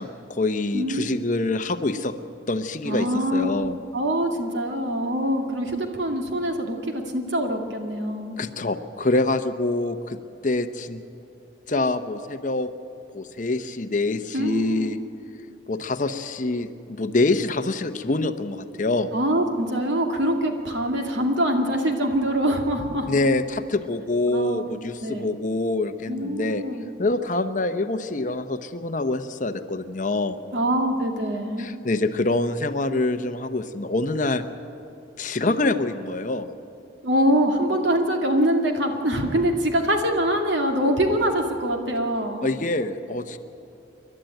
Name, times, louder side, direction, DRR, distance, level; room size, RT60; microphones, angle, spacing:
voice 1, 0.0-2.1 2.5-3.8 8.4-11.0 11.7-12.7 13.1-15.0 15.7-19.1 23.1-26.6 27.0-30.4 31.6-34.4 35.2-36.5 42.4-43.4, left 2 dB, 40° left, 9 dB, 0.8 m, -25 dB
voice 2, 0.7-1.1 2.8-3.6 3.9-8.3 14.3-14.9 19.1-23.1 24.3-24.7 25.0-25.3 26.1-26.8 30.5-31.7 37.0-42.5, equal, 70° right, 3 dB, 2.3 m, -24 dB
28.5 x 12.0 x 9.1 m, 2.9 s
head